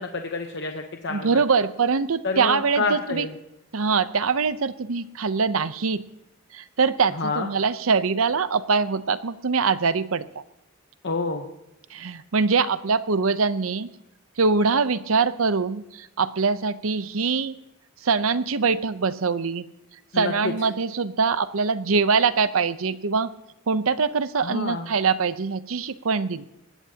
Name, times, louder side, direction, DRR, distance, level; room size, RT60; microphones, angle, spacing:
voice 1, 0.0-1.4 2.2-3.3 7.2-7.5 11.0-11.5 20.1-20.5 24.3-24.9, left 3 dB, 55° left, 4 dB, 1.0 m, -28 dB
voice 2, 1.1-3.3 3.7-6.0 6.5-10.2 11.9-13.9 14.4-17.6 18.0-19.6 20.1-23.3 23.7-26.4, right 5 dB, 75° right, 14 dB, 0.7 m, -23 dB
20.5 x 16.5 x 2.9 m, 0.88 s
head